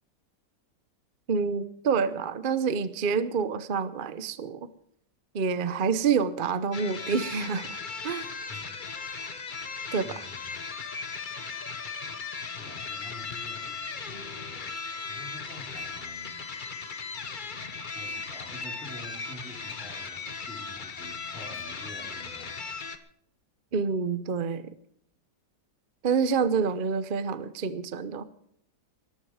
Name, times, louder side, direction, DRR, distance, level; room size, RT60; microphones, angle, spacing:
voice 1, 1.3-4.7 5.3-8.3 9.9-10.1 23.7-24.7 26.0-28.2, right 5 dB, 40° right, 13 dB, 0.8 m, -27 dB
sound 1, 6.7-23.0, left 4 dB, 35° left, 1.0 m, -37 dB
voice 2, 10.0-10.5 12.6-14.2 14.5-16.4 18.0-22.8, left 1 dB, ahead, -4 dB, 3.9 m, -47 dB
20.0 x 12.5 x 4.9 m, 0.67 s
omnidirectional pair, 1.8 m